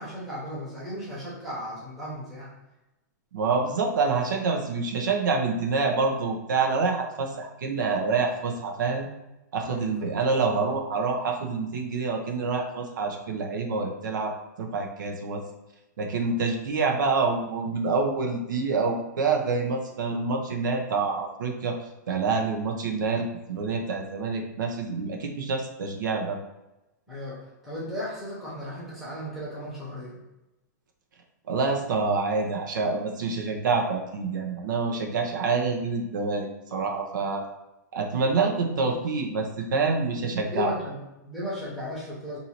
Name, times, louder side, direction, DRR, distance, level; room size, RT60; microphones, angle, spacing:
voice 1, 0.0-2.5 9.6-9.9 27.1-30.2 38.8-38.9 40.1-40.2 40.5-42.4, left 1 dB, ahead, -8 dB, 0.9 m, -35 dB
voice 2, 3.3-9.1 9.5-14.3 14.6-15.4 16.0-21.7 22.1-26.4 31.5-37.4 37.9-40.7, right 4 dB, 85° right, 2 dB, 0.7 m, -27 dB
2.7 x 2.7 x 4.3 m, 0.97 s
supercardioid pair, 175°, 10 cm